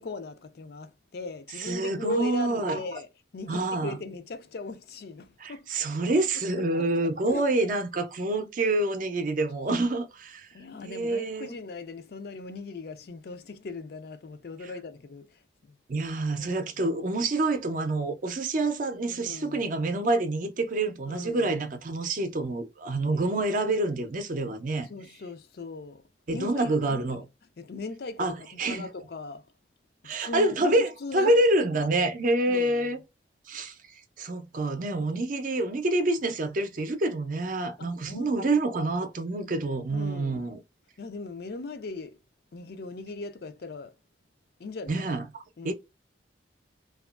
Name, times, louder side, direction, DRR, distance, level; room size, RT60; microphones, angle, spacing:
voice 1, 0.0-5.7 6.1-6.3 6.5-6.9 7.3-7.5 10.5-15.8 16.4-16.9 19.1-19.7 21.1-21.6 23.1-23.4 24.8-27.0 27.6-29.5 30.0-31.3 32.5-33.0 37.8-38.6 39.9-40.5 41.0-42.2 42.5-44.0 44.6-45.1 45.6-45.7, left 3 dB, 55° left, 0.4 m, -39 dB
voice 2, 1.6-2.8 3.5-4.0 5.4-10.5 10.8-11.5 15.9-24.9 26.3-27.2 28.2-28.3 28.6-28.8 30.0-30.9 31.1-33.0 33.5-33.7 34.2-40.6 44.9-45.2 45.6-45.7, right 2 dB, 45° right, 0.5 m, -27 dB
2.9 x 2.3 x 2.3 m
head